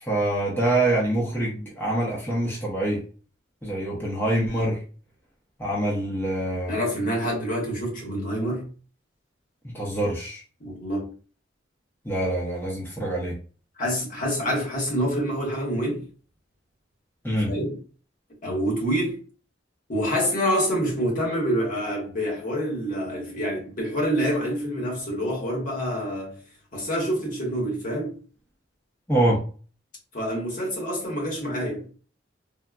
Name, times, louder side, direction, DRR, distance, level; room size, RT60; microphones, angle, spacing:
voice 1, 0.0-3.0 3.6-4.8 5.6-6.8 9.7-10.4 12.0-13.4 17.2-17.5 29.1-29.4, right 1 dB, 10° left, 0.6 m, -25 dB
voice 2, 6.7-8.7 10.6-11.1 13.8-16.1 17.5-17.8 18.4-19.2 19.9-26.4 26.7-28.2 30.1-31.9, equal, 45° left, 1.0 m, -27 dB
3.6 x 2.0 x 2.2 m
head